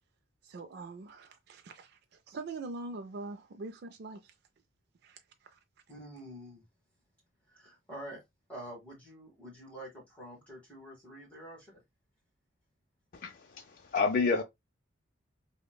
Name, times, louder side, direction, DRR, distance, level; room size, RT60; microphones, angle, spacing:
voice 1, 0.4-4.3 5.0-5.2 5.5-5.6, right 3 dB, 55° right, 0.4 m, -43 dB
voice 2, 5.9-6.6 7.5-11.8, right 1 dB, 10° left, 1.1 m, -47 dB
voice 3, 13.1-14.4, left 4 dB, 45° left, 0.4 m, -29 dB
5.0 x 2.1 x 2.2 m
head